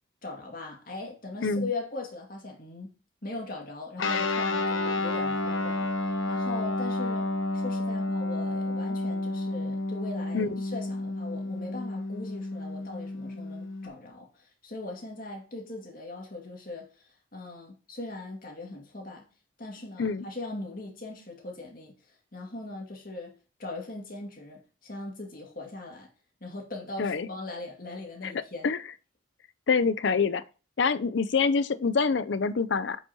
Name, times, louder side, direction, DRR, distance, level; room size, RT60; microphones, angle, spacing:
voice 1, 0.2-2.9 3.2-19.3 19.6-23.3 23.6-26.1 26.4-28.7, left 2 dB, 45° left, 2.1 m, -40 dB
Guitar, 4.0-13.9, left 2 dB, 80° left, 1.2 m, -30 dB
voice 2, 29.7-30.4 30.8-33.0, left 5 dB, 60° left, 0.5 m, -26 dB
8.3 x 5.5 x 2.9 m
head